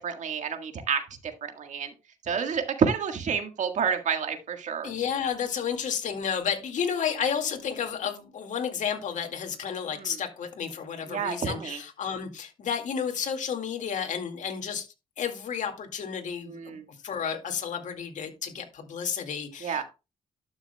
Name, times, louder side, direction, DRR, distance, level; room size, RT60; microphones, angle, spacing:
voice 1, 0.0-1.9 2.2-4.9 9.9-10.1 11.1-11.8 16.5-16.8 19.6-19.8, right 6 dB, 65° right, 6 dB, 1.7 m, -29 dB
voice 2, 4.8-14.9 15.2-16.8 17.0-19.8, left 7 dB, 70° left, 5 dB, 2.1 m, -31 dB
12.5 x 6.4 x 2.3 m, 0.28 s
cardioid pair, 65°, 13 cm